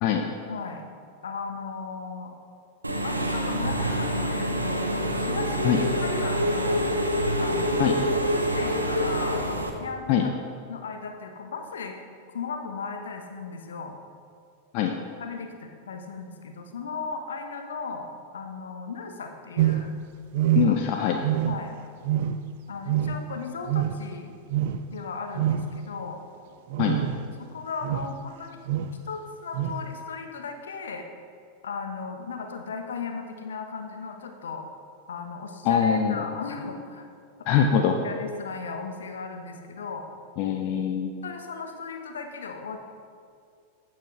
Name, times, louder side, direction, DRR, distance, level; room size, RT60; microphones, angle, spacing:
voice 1, 0.5-0.8 1.2-2.3 3.0-6.8 7.4-10.4 10.7-12.0 12.3-13.9 15.2-19.9 20.6-21.1 21.4-21.7 22.7-24.3 24.9-26.2 27.4-28.6 29.1-31.0 31.6-34.7 35.1-37.1 38.0-40.1 41.2-42.9, left 4 dB, 65° left, 4 dB, 0.9 m, -36 dB
Engine / Mechanisms, 2.8-9.7, equal, 85° right, 0.7 m, -26 dB
sound 1, 19.6-20.0 20.3-20.9 21.2-21.7 22.0-22.5 22.8-23.3 23.7-24.1 24.5-24.8 25.3-25.7 26.7-27.3 27.8-28.2 28.6-29.0 29.5-29.8, right 11 dB, 50° right, 0.3 m, -26 dB
voice 2, 20.5-21.2 26.8-27.0 35.7-36.2 37.5-38.0 40.4-41.1, left 8 dB, 45° left, 3 dB, 0.5 m, -23 dB
15.0 x 5.8 x 3.1 m, 2.3 s
figure-of-eight pair, 90°, 0 cm